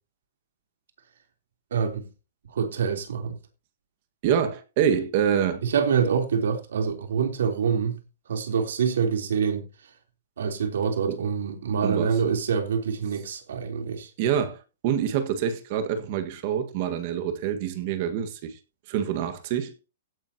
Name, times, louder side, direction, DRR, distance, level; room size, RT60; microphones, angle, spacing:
voice 1, 1.7-2.1 2.5-3.4 5.6-8.0 8.3-9.6 10.4-14.1, right 6 dB, 75° right, 3.4 m, -26 dB
voice 2, 4.2-5.6 11.1-11.2 11.8-12.1 14.2-18.6 18.9-19.7, right 8 dB, 35° right, 1.6 m, -26 dB
16.0 x 9.8 x 2.9 m
hypercardioid pair, 180°, 0 cm